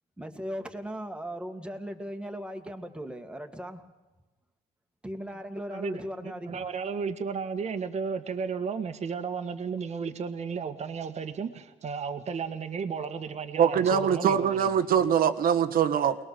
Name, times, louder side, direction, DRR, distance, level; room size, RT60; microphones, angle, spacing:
voice 1, 0.2-3.9 5.0-6.6, equal, 5° right, 4 dB, 2.2 m, -38 dB
voice 2, 5.7-14.7, right 5 dB, 40° right, 6 dB, 1.6 m, -34 dB
voice 3, 13.6-16.2, right 8 dB, 60° right, 10 dB, 1.5 m, -23 dB
22.5 x 20.5 x 6.9 m, 1.1 s
cardioid pair, 110°, 17 cm